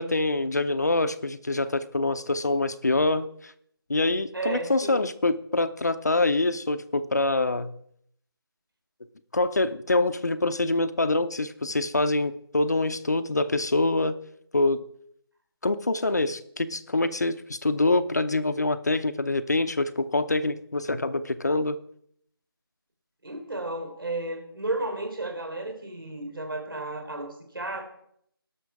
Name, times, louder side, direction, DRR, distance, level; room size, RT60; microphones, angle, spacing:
voice 1, 0.0-3.5 3.9-7.7 9.3-14.2 14.5-14.8 15.6-21.8, left 2 dB, 45° left, 11 dB, 0.7 m, -25 dB
voice 2, 4.3-5.1 23.2-27.8, right 2 dB, 65° right, 3 dB, 3.6 m, -33 dB
18.5 x 6.2 x 4.7 m, 0.68 s
figure-of-eight pair, 175°, 13 cm